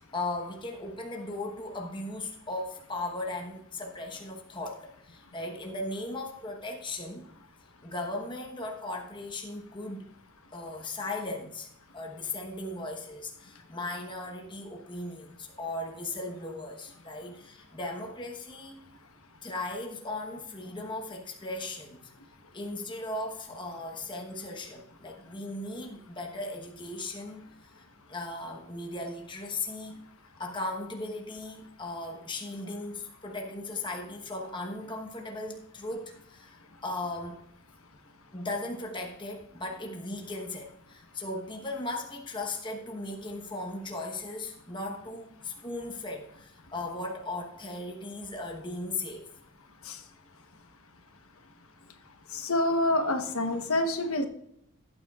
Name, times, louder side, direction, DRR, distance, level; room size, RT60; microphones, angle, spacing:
voice 1, 0.0-7.3 7.8-10.1 10.5-11.7 11.9-18.8 19.4-22.1 22.5-27.7 28.1-30.0 30.4-37.4 38.3-49.3, left 2 dB, 20° left, 1 dB, 1.1 m, -37 dB
voice 2, 52.3-54.3, left 1 dB, 75° left, 6 dB, 1.1 m, -27 dB
16.0 x 9.0 x 2.4 m, 0.75 s
head